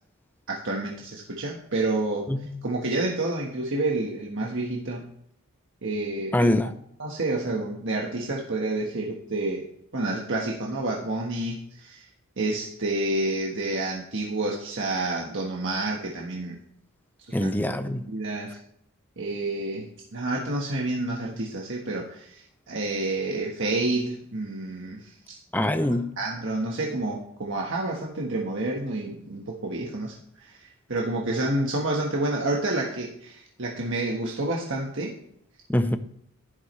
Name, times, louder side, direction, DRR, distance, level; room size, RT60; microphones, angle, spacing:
voice 1, 0.5-2.3 2.6-5.1 5.8-6.5 7.0-9.7 9.9-12.1 12.4-16.6 17.3-17.5 18.1-18.6 19.2-25.7 26.2-35.1, right 2 dB, 60° right, 1.5 m, -29 dB
voice 2, 2.3-2.6 6.3-6.8 17.3-18.1 25.5-26.1 35.7-36.0, left 1 dB, 10° left, 0.6 m, -24 dB
11.0 x 11.0 x 3.2 m
head